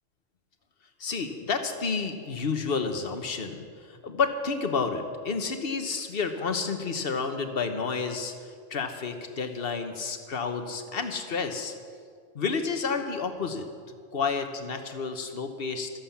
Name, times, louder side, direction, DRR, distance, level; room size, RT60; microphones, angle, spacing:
voice 1, 1.0-8.3 8.7-11.7 12.3-13.7 14.1-15.9, left 5 dB, 50° left, 7 dB, 1.3 m, -30 dB
13.5 x 11.5 x 7.3 m, 2.1 s
omnidirectional pair, 1.3 m